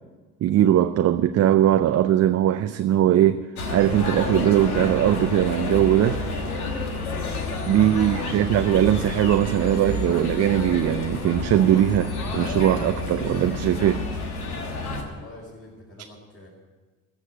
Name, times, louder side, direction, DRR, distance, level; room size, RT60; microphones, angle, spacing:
voice 1, 0.4-6.2 7.6-14.1, right 11 dB, 35° right, 9 dB, 0.5 m, -20 dB
sound 1, 3.6-15.0, left 3 dB, 85° left, 1.4 m, -29 dB
Mallet percussion, 3.8-6.3, right 5 dB, 55° right, 1.5 m, -44 dB
voice 2, 7.7-8.5 15.0-16.5, left 2 dB, 30° left, -7 dB, 4.6 m, -45 dB
14.0 x 6.4 x 8.8 m, 1.3 s
hypercardioid pair, 60°, 43 cm